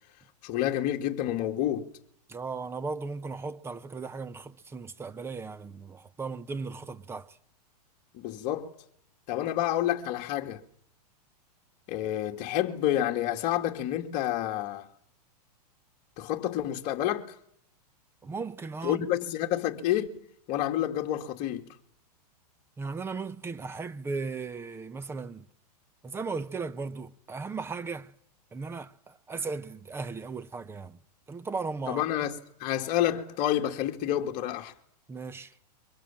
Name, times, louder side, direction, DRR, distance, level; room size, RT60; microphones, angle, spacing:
voice 1, 0.4-1.9 8.1-8.7 9.3-10.6 11.9-14.9 16.2-17.4 18.8-21.7 31.9-34.7, left 12 dB, 40° left, 2.6 m, -29 dB
voice 2, 2.3-7.4 18.2-19.1 22.8-25.4 26.0-28.1 28.5-31.0 31.3-32.0 35.1-35.5, right 4 dB, 10° right, 1.0 m, -36 dB
25.5 x 24.0 x 7.6 m
hypercardioid pair, 140°, 21 cm